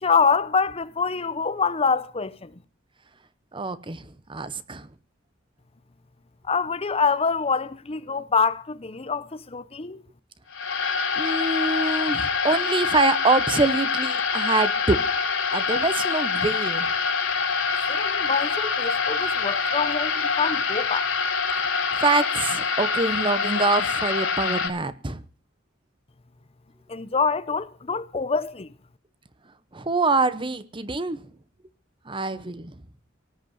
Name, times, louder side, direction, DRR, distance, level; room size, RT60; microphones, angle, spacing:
voice 1, 0.0-2.5 6.4-10.0 17.9-21.1 26.9-28.7, left 5 dB, 30° left, 0.7 m, -25 dB
voice 2, 3.5-4.9 11.2-15.0 15.5-16.9 22.0-25.2 29.7-31.2 32.1-32.7, right 3 dB, 25° right, 0.9 m, -25 dB
sound 1, 10.5-24.7, left 5 dB, 75° left, 3.5 m, -25 dB
18.0 x 8.1 x 9.3 m
head